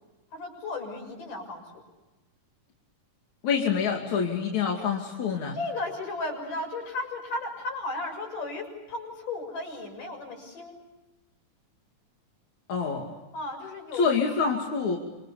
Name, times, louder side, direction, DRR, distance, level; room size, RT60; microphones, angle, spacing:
voice 1, 0.3-1.6 5.5-10.8 13.3-14.1, left 2 dB, 85° left, 3 dB, 8.5 m, -35 dB
voice 2, 3.4-5.6 12.7-13.2 13.9-15.0, left 6 dB, 65° left, 0 dB, 3.9 m, -26 dB
27.5 x 26.5 x 7.0 m, 1.1 s
omnidirectional pair, 3.6 m